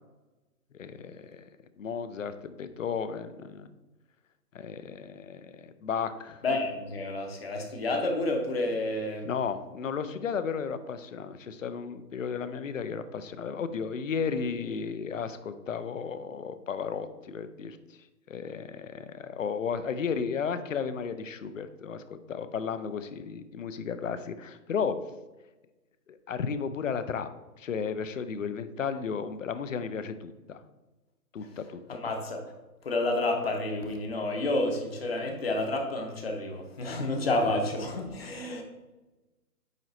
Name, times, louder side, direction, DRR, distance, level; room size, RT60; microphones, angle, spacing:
voice 1, 0.7-1.4 1.8-3.7 4.5-6.4 9.2-17.8 18.3-25.0 26.1-27.3 27.6-30.6 31.3-31.8, left 6 dB, 55° left, 12 dB, 0.6 m, -34 dB
voice 2, 6.4-9.2 31.9-32.4 32.8-38.6, left 2 dB, 40° left, 3 dB, 1.0 m, -30 dB
9.3 x 3.1 x 3.9 m, 1.1 s
hypercardioid pair, 160°, 48 cm